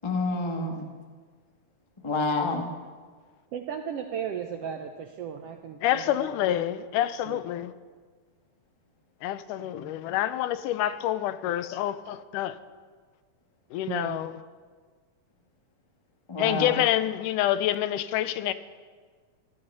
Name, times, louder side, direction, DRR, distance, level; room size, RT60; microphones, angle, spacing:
voice 1, 0.0-0.9 2.0-2.7 9.7-9.8 16.3-16.8, left 2 dB, 45° left, 0.3 m, -28 dB
voice 2, 3.5-6.3 7.3-7.4 13.9-14.3, right 8 dB, 75° right, 1.4 m, -35 dB
voice 3, 5.8-7.7 9.2-12.6 13.7-14.3 16.4-18.5, left 12 dB, 90° left, 2.2 m, -27 dB
16.5 x 13.0 x 5.5 m
omnidirectional pair, 3.6 m